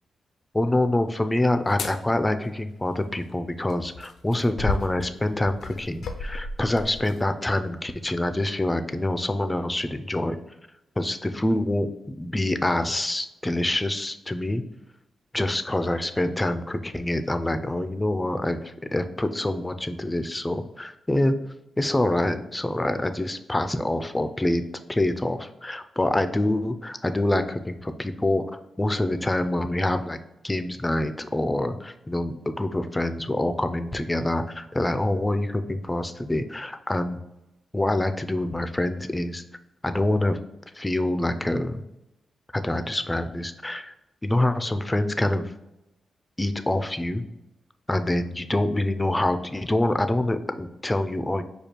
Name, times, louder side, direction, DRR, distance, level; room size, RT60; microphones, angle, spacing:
voice 1, 0.5-10.4 11.0-14.6 15.3-21.3 21.8-24.6 24.9-28.4 28.8-30.2 30.4-37.2 37.7-39.4 39.8-40.4 40.8-41.8 42.5-43.9 44.2-45.5 46.4-47.2 47.9-51.4, left 1 dB, 15° left, 9 dB, 0.4 m, -26 dB
sound 1, 1.6-2.0 3.7-7.2 7.9-8.0, left 3 dB, 75° left, 0.4 m, -34 dB
5.0 x 2.4 x 4.3 m, 0.92 s
cardioid pair, 65°, 0 cm